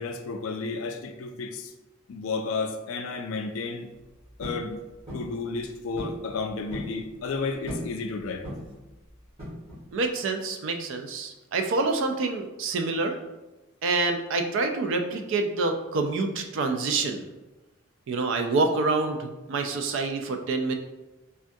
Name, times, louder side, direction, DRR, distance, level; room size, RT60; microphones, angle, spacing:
voice 1, 0.0-1.7 2.1-3.9 4.4-4.8 5.1-8.5, left 4 dB, 75° left, 7 dB, 0.3 m, -32 dB
sound 1, 4.4-4.7 5.1-5.3 6.0-6.2 6.5-7.0 7.7-8.0 8.4-8.8 9.4-9.9, equal, 30° right, 1.3 m, -36 dB
voice 2, 9.9-13.2 13.8-17.2 18.1-20.7, right 3 dB, 65° right, 5 dB, 0.4 m, -27 dB
3.5 x 2.2 x 2.6 m, 1.1 s
head